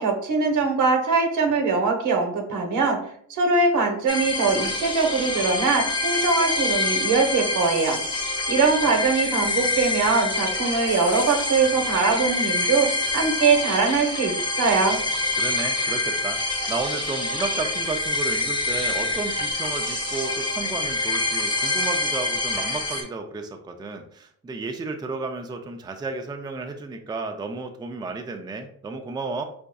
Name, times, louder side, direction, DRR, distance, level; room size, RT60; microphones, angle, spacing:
voice 1, 0.0-3.0 3.3-8.0 8.5-12.9 13.1-15.0, right 4 dB, 80° right, 2 dB, 0.9 m, -22 dB
sound 1, 4.1-23.0, left 2 dB, 15° left, 0.8 m, -26 dB
voice 2, 15.4-16.4 16.7-29.4, right 3 dB, 15° right, 4 dB, 0.4 m, -32 dB
4.5 x 2.6 x 2.2 m, 0.63 s
cardioid pair, 90°, 30 cm